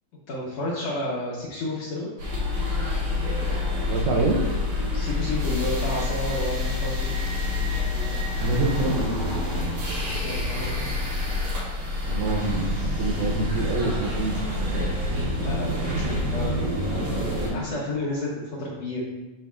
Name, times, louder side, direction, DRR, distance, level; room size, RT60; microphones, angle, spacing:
voice 1, 0.3-2.1 4.9-7.1 10.2-10.9 15.4-19.0, left 1 dB, 75° left, -5 dB, 1.5 m, -31 dB
sound 1, 2.2-17.5, left 2 dB, 60° right, 3.6 m, -27 dB
voice 2, 3.9-4.4 8.4-9.4 12.0-14.3 14.6-15.0, right 3 dB, 80° right, 0 dB, 2.0 m, -26 dB
10.5 x 4.0 x 2.4 m, 1.1 s
omnidirectional pair, 4.3 m